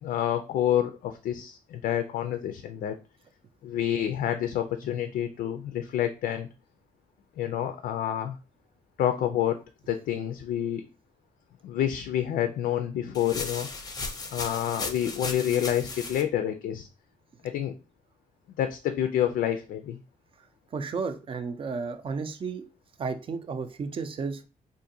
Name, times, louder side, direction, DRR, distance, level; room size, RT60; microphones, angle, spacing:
voice 1, 0.0-3.0 3.6-6.5 7.4-8.4 9.0-9.6 9.9-10.9 11.6-13.7 14.3-16.9 17.4-17.7 18.6-20.0, left 10 dB, 85° left, 7 dB, 0.4 m, -28 dB
sound 1, 13.1-16.2, left 3 dB, 25° left, 0.6 m, -36 dB
voice 2, 20.7-22.6 23.0-24.5, right 5 dB, 40° right, 9 dB, 0.4 m, -33 dB
3.7 x 2.5 x 2.7 m, 0.33 s
cardioid pair, 120°, 14 cm